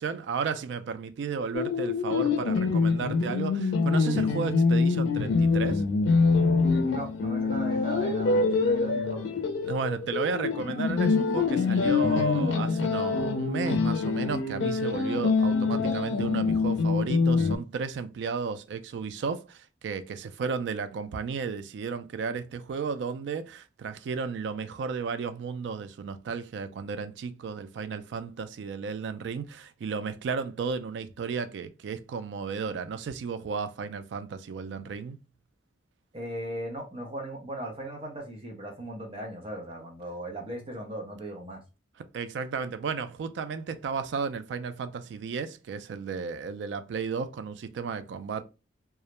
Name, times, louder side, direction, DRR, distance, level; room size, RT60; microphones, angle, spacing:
voice 1, 0.0-5.8 9.6-35.2 42.1-48.4, right 5 dB, 75° right, 0.3 m, -33 dB
sound 1, 1.5-17.6, left 4 dB, 80° left, 0.4 m, -25 dB
voice 2, 6.8-9.4 36.1-41.6, right 1 dB, 30° right, 0.7 m, -38 dB
2.3 x 2.1 x 2.8 m
head